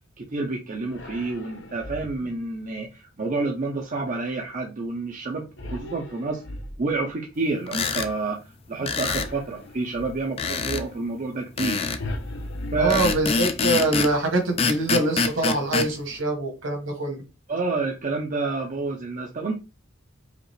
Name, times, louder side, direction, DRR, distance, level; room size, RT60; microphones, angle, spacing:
voice 1, 0.2-6.4 6.8-11.9 12.7-13.1 17.5-19.6, right 3 dB, 40° right, 0.6 m, -29 dB
sound 1, 0.9-2.4 5.6-7.1 9.1-10.3 12.0-13.7, left 1 dB, 65° left, 0.8 m, -37 dB
sound 2, 7.7-8.1 8.9-9.3 10.4-10.9 11.6-12.0 12.9-14.2 14.6-15.9, left 4 dB, 30° left, 0.4 m, -25 dB
voice 2, 12.8-17.2, right 1 dB, 65° right, 1.6 m, -24 dB
5.0 x 2.4 x 3.2 m
head